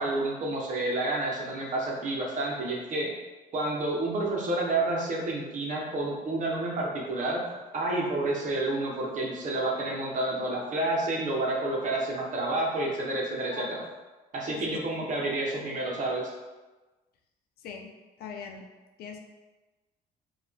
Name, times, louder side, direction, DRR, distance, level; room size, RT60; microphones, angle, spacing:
voice 1, 0.0-3.1 3.5-7.4 7.7-13.8 14.3-16.3, right 2 dB, 50° right, -2 dB, 1.2 m, -29 dB
voice 2, 14.5-14.8 17.6-18.7 19.0-19.2, left 6 dB, 70° left, 3 dB, 0.6 m, -41 dB
4.9 x 2.7 x 3.5 m, 1.2 s
cardioid pair, 110°, 17 cm